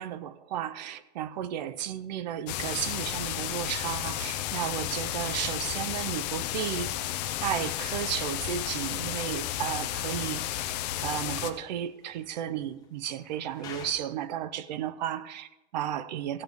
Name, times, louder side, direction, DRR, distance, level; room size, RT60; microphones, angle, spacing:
voice 1, 0.0-10.7 11.0-16.4, right 10 dB, 40° right, 0.4 m, -34 dB
sound 1, 2.5-11.5, left 13 dB, 35° left, 0.6 m, -33 dB
sound 2, 8.1-13.9, left 5 dB, 10° left, 1.4 m, -54 dB
15.5 x 7.6 x 3.5 m
supercardioid pair, 160°, 35 cm